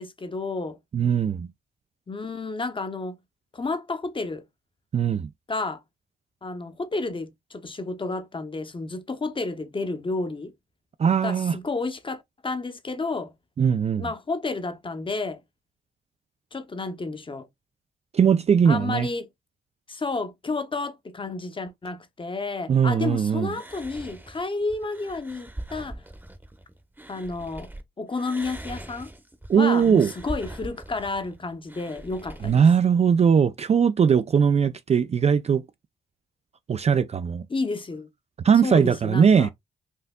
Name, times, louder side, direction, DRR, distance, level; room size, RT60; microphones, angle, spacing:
voice 1, 0.0-0.8 2.1-3.2 3.5-4.4 5.5-5.8 6.4-10.5 11.2-13.3 14.0-15.4 16.5-17.5 18.7-19.3 19.9-26.0 27.1-27.7 28.0-29.1 29.5-32.6 37.5-38.1 38.6-39.5, left 3 dB, 25° left, 0.8 m, -31 dB
voice 2, 0.9-1.5 4.9-5.3 11.0-11.6 13.6-14.1 18.1-19.1 22.7-23.5 29.5-30.1 32.4-35.6 36.7-37.5 38.4-39.5, right 7 dB, 35° right, 0.4 m, -20 dB
sound 1, 23.4-27.8 28.1-32.6, right 1 dB, 10° right, 0.9 m, -41 dB
4.3 x 2.6 x 2.2 m
supercardioid pair, 55°, 19 cm